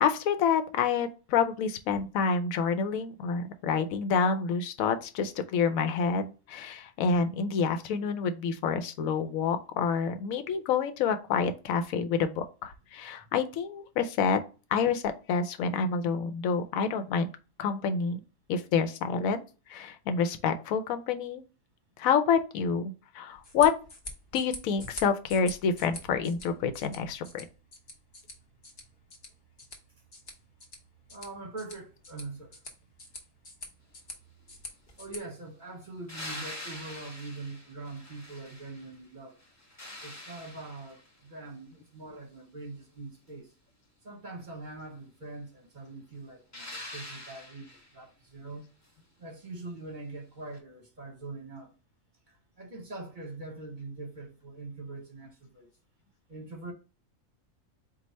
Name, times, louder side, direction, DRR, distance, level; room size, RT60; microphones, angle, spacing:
voice 1, 0.0-14.4 14.7-15.0 15.3-17.3 17.6-18.2 18.5-19.4 19.7-21.5 22.0-23.7 24.3-27.4, left 6 dB, 85° left, 1.0 m, -28 dB
sound 1, 23.3-35.2, left 2 dB, 45° left, 1.1 m, -47 dB
voice 2, 31.1-32.6 35.0-39.4 40.0-43.5 44.0-48.7 49.2-51.7 52.3-55.7 56.3-56.7, right 3 dB, 40° right, 0.9 m, -43 dB
sound 2, 36.1-39.0 39.4-41.2 46.5-48.0 50.5-50.6, left 1 dB, 15° left, 0.6 m, -44 dB
4.6 x 2.4 x 4.1 m
omnidirectional pair, 1.4 m